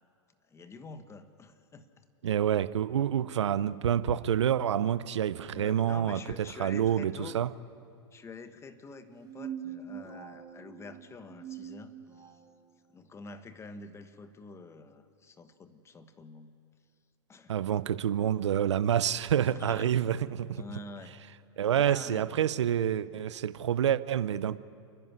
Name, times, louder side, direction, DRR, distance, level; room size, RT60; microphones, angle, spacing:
voice 1, 0.5-2.0 5.5-7.4 8.1-12.4 12.9-16.5 17.3-17.5 19.5-19.9 20.6-21.2 21.7-22.4, left 3 dB, 20° left, 10 dB, 1.3 m, -47 dB
voice 2, 2.2-6.2 6.6-7.5 17.5-20.6 21.6-24.6, right 9 dB, 80° right, 17 dB, 0.7 m, -28 dB
sound 1, 9.1-12.5, right 9 dB, 25° right, 1.5 m, -43 dB
29.5 x 11.0 x 9.6 m, 2.4 s
hypercardioid pair, 105°, 15 cm